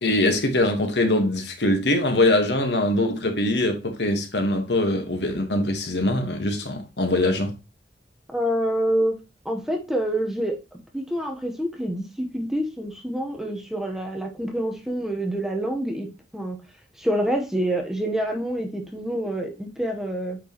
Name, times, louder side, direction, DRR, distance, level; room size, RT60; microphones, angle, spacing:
voice 1, 0.0-7.5, left 1 dB, 75° left, 1.4 m, -22 dB
voice 2, 8.3-9.2 9.4-16.1 16.3-16.6 17.0-20.4, right 1 dB, ahead, 1.0 m, -27 dB
8.8 x 4.6 x 3.0 m
head